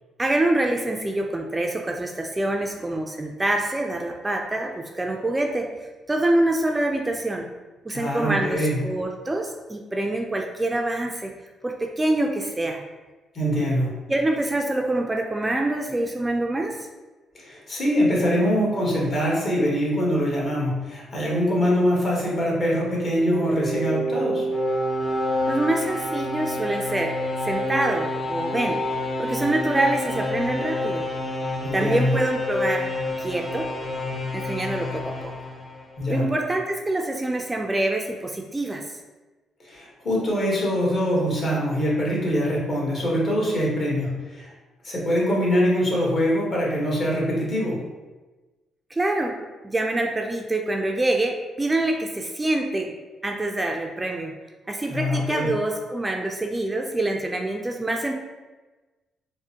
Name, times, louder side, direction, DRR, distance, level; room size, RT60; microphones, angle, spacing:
voice 1, 0.2-5.7 6.1-7.5 7.8-11.3 11.6-12.8 14.1-16.9 25.5-27.2 27.4-28.8 29.2-31.0 31.7-32.9 33.2-33.7 34.3-35.3 36.1-38.9 48.9-52.9 53.2-54.4 54.7-58.1, right 2 dB, 15° right, 2 dB, 0.3 m, -25 dB
voice 2, 7.9-8.8 13.3-14.0 17.3-24.5 31.6-32.1 36.0-36.3 39.6-44.5 44.8-47.8 54.9-55.5, equal, 45° left, -4 dB, 1.4 m, -23 dB
sound 1, 23.0-36.1, left 1 dB, 25° left, 0.6 m, -28 dB
4.8 x 2.1 x 2.8 m, 1.2 s
cardioid pair, 90°, 0 cm